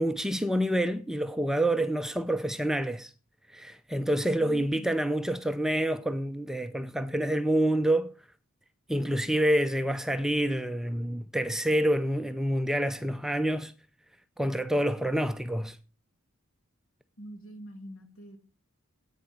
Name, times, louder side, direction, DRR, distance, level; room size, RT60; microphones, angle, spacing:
voice 1, 0.0-3.1 3.5-8.1 8.9-13.7 14.4-15.8, right 1 dB, ahead, 0.5 m, -27 dB
voice 2, 17.2-18.4, right 1 dB, 65° left, 2.0 m, -44 dB
8.9 x 7.2 x 7.3 m
head